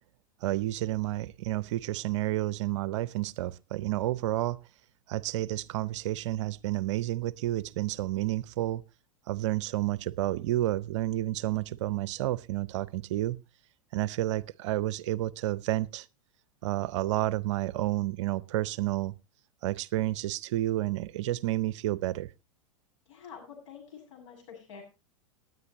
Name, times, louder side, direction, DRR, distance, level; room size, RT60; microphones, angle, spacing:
voice 1, 0.4-4.6 5.1-8.8 9.3-13.4 13.9-16.1 16.6-19.1 19.6-22.3, right 15 dB, 55° right, 0.6 m, -30 dB
voice 2, 23.1-24.8, left 7 dB, 60° left, 7.6 m, -47 dB
19.0 x 9.4 x 3.0 m
hypercardioid pair, 100°, 18 cm